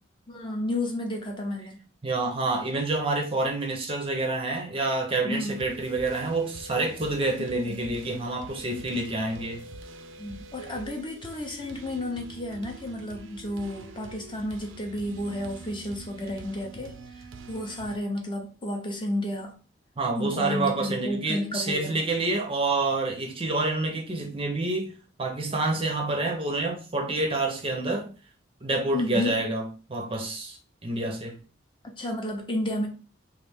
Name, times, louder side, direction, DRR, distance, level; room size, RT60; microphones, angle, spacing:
voice 1, 0.3-1.8 5.2-5.6 7.4-7.8 10.2-19.6 20.2-22.0 28.9-29.4 32.0-32.9, left 1 dB, 25° left, 0.6 m, -32 dB
voice 2, 2.0-9.6 20.0-28.1 28.6-31.4, right 2 dB, 30° right, 0.5 m, -28 dB
sound 1, 5.3-18.0, right 3 dB, 85° right, 0.4 m, -45 dB
3.1 x 2.4 x 3.4 m
head